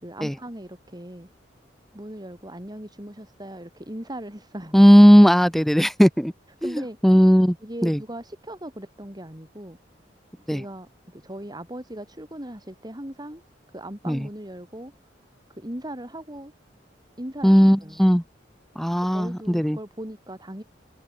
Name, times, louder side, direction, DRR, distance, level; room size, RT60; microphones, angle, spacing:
voice 1, 0.0-1.3 1.9-4.9 6.6-7.0 7.6-9.8 10.5-13.4 13.7-14.9 15.5-16.5 17.2-18.1 19.1-20.6, right 1 dB, 25° right, 5.3 m, -38 dB
voice 2, 4.7-6.3 6.6-6.7 7.0-7.6 7.8-8.0 10.5-10.6 14.1-14.2 17.4-18.2 18.8-19.8, equal, ahead, 2.0 m, -16 dB
head